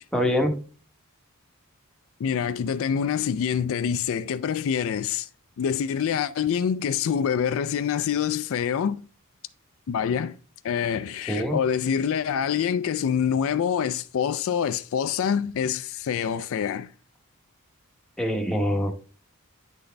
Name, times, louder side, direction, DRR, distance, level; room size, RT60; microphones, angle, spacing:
voice 1, 0.1-0.5 11.3-11.6 18.2-18.9, equal, 5° left, 0.9 m, -24 dB
voice 2, 2.2-5.3 5.6-9.0 9.9-10.4 10.6-16.9, left 8 dB, 65° left, 0.3 m, -26 dB
9.6 x 4.0 x 3.3 m
head